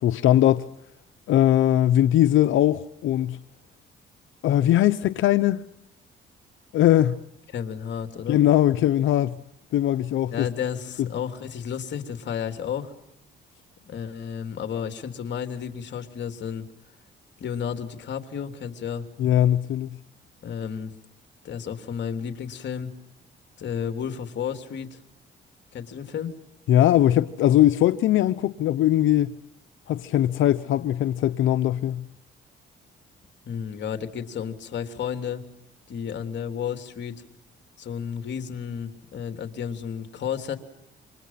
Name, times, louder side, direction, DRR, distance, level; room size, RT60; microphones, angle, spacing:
voice 1, 0.0-0.7 1.3-3.4 4.4-5.6 6.7-7.2 8.3-9.4 9.7-10.5 19.2-19.9 26.7-29.3 29.9-32.1, left 12 dB, 80° left, 0.9 m, -20 dB
voice 2, 7.5-8.4 10.3-12.9 13.8-16.7 17.4-19.1 20.4-20.9 21.4-22.9 23.6-25.0 25.7-26.3 33.4-35.4 35.9-37.2 37.8-40.6, left 8 dB, 65° left, 3.3 m, -32 dB
28.5 x 26.0 x 5.8 m
cardioid pair, 90°, 20 cm